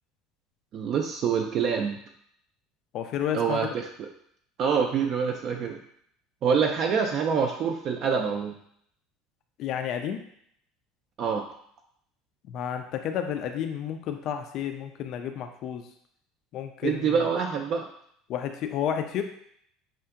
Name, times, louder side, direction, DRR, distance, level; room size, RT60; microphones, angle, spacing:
voice 1, 0.7-2.0 3.3-3.7 4.0-4.1 4.6-5.8 6.4-8.5 11.2-11.4 16.8-17.9, right 6 dB, 45° right, 3 dB, 0.3 m, -26 dB
voice 2, 2.9-3.6 9.6-10.2 12.5-15.9 16.5-17.3 18.3-19.2, left 9 dB, 45° left, 6 dB, 0.3 m, -31 dB
5.6 x 2.4 x 2.4 m, 0.68 s
figure-of-eight pair, 65°, 0 cm